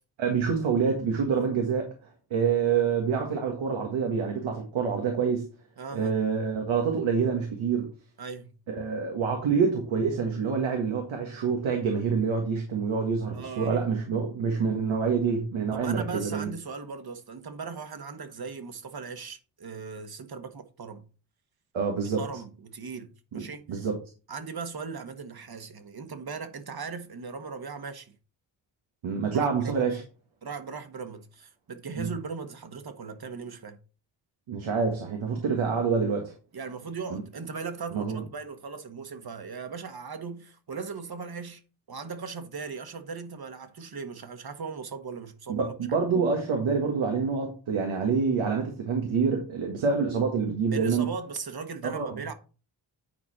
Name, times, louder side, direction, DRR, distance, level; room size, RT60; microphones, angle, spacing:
voice 1, 0.2-1.9 2.3-5.5 5.9-7.9 8.7-16.5 21.7-22.2 23.3-24.0 29.0-30.0 32.0-32.1 34.5-36.3 37.1-37.2 37.9-38.2 45.5-51.1 51.8-52.1, right 5 dB, 85° right, 1.7 m, -27 dB
voice 2, 5.8-6.1 8.2-8.5 13.3-13.9 15.7-21.0 22.2-23.6 24.3-28.1 29.3-29.8 30.4-33.8 36.5-41.6 41.9-45.7 50.7-52.3, right 5 dB, 50° right, 1.6 m, -38 dB
9.5 x 4.5 x 4.3 m
cardioid pair, 55°, 46 cm